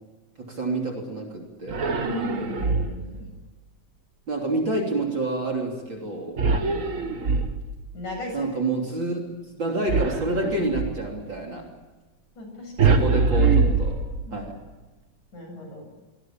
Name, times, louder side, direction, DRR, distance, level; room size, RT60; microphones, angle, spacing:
voice 1, 0.4-1.9 4.3-6.4 8.3-9.2 9.6-11.7 12.8-14.0 14.3-14.6, right 2 dB, 35° right, 1 dB, 3.6 m, -28 dB
sound 1, 1.7-3.2 6.4-7.9 9.9-11.1 12.8-14.5, right 4 dB, 80° right, 0.7 m, -23 dB
voice 2, 1.9-3.3 6.5-7.3 7.9-8.5 12.4-12.9 14.3-14.4 15.3-15.9, left 2 dB, 60° left, 3 dB, 9.0 m, -37 dB
25.5 x 20.5 x 8.8 m, 1.2 s
omnidirectional pair, 3.8 m